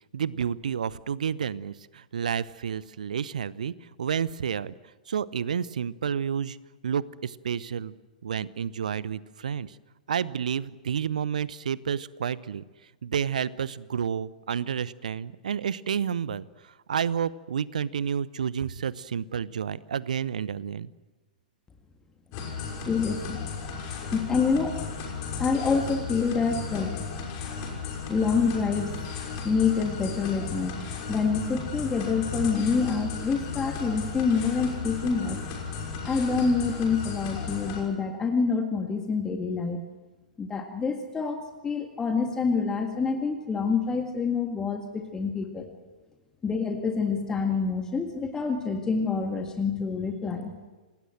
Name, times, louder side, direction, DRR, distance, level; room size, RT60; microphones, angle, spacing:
voice 1, 0.1-3.7 4.0-4.7 5.1-6.6 6.8-7.9 8.2-9.8 10.1-12.6 13.0-20.9, right 7 dB, 60° right, 19 dB, 0.9 m, -30 dB
sound 1, 22.3-37.8, left 5 dB, 35° left, 6.2 m, -35 dB
voice 2, 22.9-23.5 24.1-24.8 25.4-26.9 28.1-29.0 29.4-30.7 31.1-35.4 36.0-39.8 40.4-45.7 46.4-50.6, left 5 dB, 15° left, 4 dB, 2.0 m, -27 dB
27.5 x 19.5 x 7.8 m, 1.2 s
figure-of-eight pair, 105°, 5 cm